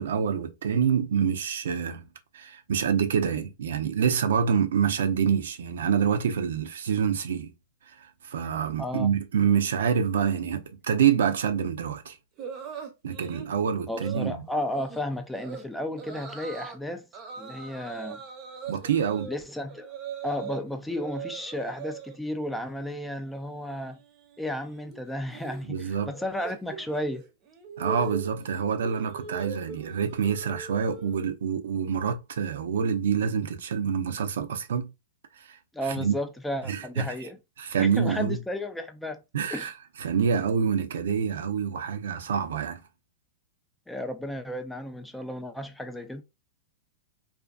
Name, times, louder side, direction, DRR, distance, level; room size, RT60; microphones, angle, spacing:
voice 1, 0.0-2.0 2.3-7.5 8.0-12.2 13.0-14.4 18.7-19.3 25.7-26.1 27.8-34.9 35.5-35.6 36.0-36.2 36.7-37.0 37.6-38.4 39.3-39.7 40.0-42.8, right 7 dB, 80° right, 0.4 m, -26 dB
voice 2, 8.8-9.1 13.9-17.1 17.4-18.2 19.3-19.9 20.2-24.0 24.4-27.2 35.7-37.4 37.8-39.2 39.5-39.7 43.9-46.2, left 1 dB, 5° left, 0.3 m, -33 dB
sound 1, 12.4-13.5 13.9-14.3 14.7-15.0 15.3-15.6 16.0-16.8 17.1-20.6 20.9-22.2 22.5-22.9 23.2-31.4, right 6 dB, 35° right, 0.6 m, -41 dB
2.5 x 2.4 x 2.2 m
hypercardioid pair, 135°, 0 cm